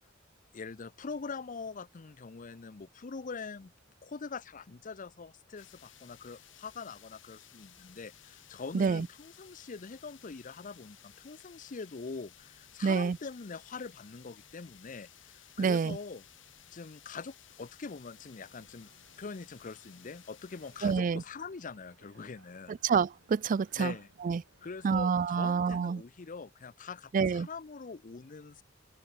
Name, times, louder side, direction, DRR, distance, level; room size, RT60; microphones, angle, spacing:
voice 1, 0.5-3.7 4.0-15.1 15.3-16.2 16.7-18.9 19.2-22.8 23.8-24.1 24.6-28.6, left 4 dB, 45° left, 0.6 m, -43 dB
sound 1, 5.6-21.0, left 11 dB, 80° left, 2.5 m, -57 dB
voice 2, 8.7-9.1 12.8-13.2 15.6-16.0 20.8-21.2 22.7-23.9 24.2-24.4 24.8-26.0 27.1-27.5, right 5 dB, 45° right, 0.3 m, -27 dB
sound 2, 18.2-25.4, right 3 dB, 80° right, 5.9 m, -65 dB
head